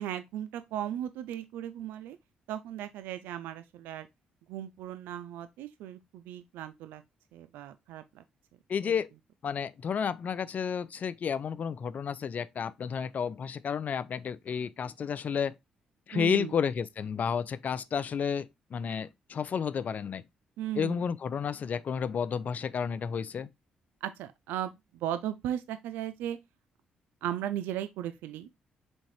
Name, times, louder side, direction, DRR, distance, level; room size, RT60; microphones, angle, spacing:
voice 1, 0.0-2.2 2.5-4.1 4.5-7.0 7.3-8.2 8.8-8.9 16.1-16.5 20.6-21.0 24.0-26.4 27.2-28.5, right 11 dB, 85° right, 0.3 m, -36 dB
voice 2, 8.7-9.1 9.4-15.5 16.1-20.2 20.8-23.5, left 7 dB, 55° left, 0.4 m, -31 dB
4.3 x 3.5 x 3.1 m
supercardioid pair, 60°, 3 cm